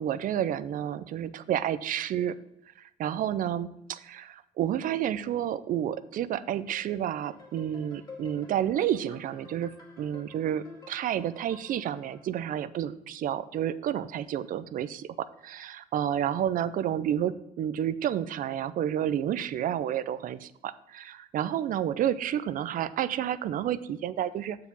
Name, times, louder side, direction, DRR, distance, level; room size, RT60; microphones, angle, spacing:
voice 1, 0.0-2.4 3.0-24.6, right 10 dB, 55° right, 14 dB, 0.5 m, -30 dB
sound 1, 6.7-12.2, left 4 dB, 25° left, 2.5 m, -51 dB
6.8 x 4.8 x 5.2 m, 0.84 s
cardioid pair, 110°, 17 cm